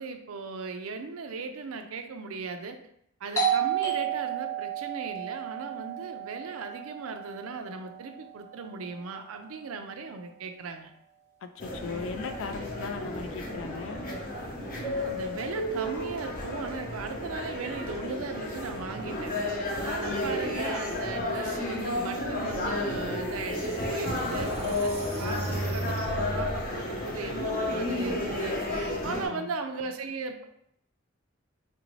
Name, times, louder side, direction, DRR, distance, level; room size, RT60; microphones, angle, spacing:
voice 1, 0.0-2.8 3.2-10.9 14.6-19.3 19.8-30.4, right 4 dB, 90° right, 6 dB, 0.5 m, -37 dB
Doorbell, 3.4-8.7, right 8 dB, 15° left, 0.6 m, -32 dB
voice 2, 11.4-14.2 20.0-20.4 25.2-25.6 29.0-29.5, left 5 dB, 65° left, 8 dB, 0.3 m, -38 dB
sound 1, 11.6-29.3, left 1 dB, 45° left, 0.7 m, -32 dB
sound 2, 23.0-23.1 23.6-26.8, right 2 dB, 30° right, 0.4 m, -35 dB
4.0 x 2.6 x 3.1 m, 0.75 s
head